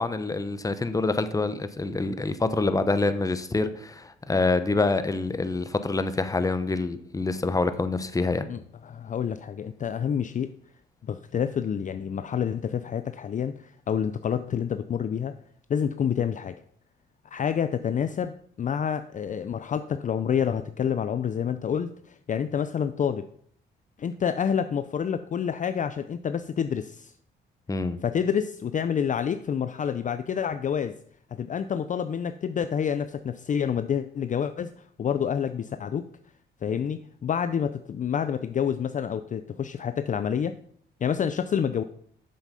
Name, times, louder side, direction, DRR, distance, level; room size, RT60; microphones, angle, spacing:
voice 1, 0.0-8.5 27.7-28.0, left 3 dB, 15° left, 11 dB, 0.8 m, -26 dB
voice 2, 8.5-10.5 11.0-15.3 15.7-16.6 17.3-23.2 24.0-27.1 28.0-31.0 31.3-34.7 35.0-36.1 36.6-40.6 41.0-41.8, left 8 dB, 40° left, 10 dB, 0.5 m, -28 dB
7.4 x 7.2 x 5.5 m, 0.62 s
cardioid pair, 90°, 20 cm